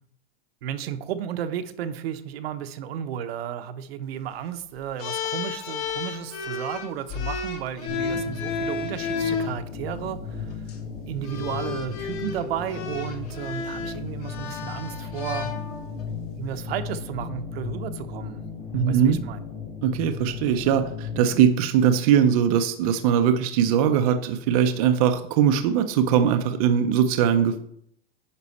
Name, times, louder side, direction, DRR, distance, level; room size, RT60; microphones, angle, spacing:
voice 1, 0.6-10.5 11.1-15.5 16.4-18.4 18.9-19.4, right 9 dB, 70° right, 10 dB, 0.9 m, -33 dB
sound 1, 5.0-9.5 10.5-10.7 11.2-16.1, left 5 dB, 40° left, 1.1 m, -32 dB
sound 2, 7.9-21.4, left 5 dB, 55° left, 3.7 m, -36 dB
voice 2, 18.7-19.2 19.8-27.6, right 8 dB, 35° right, 7 dB, 0.5 m, -21 dB
9.7 x 5.4 x 4.1 m, 0.69 s
supercardioid pair, 180°, 31 cm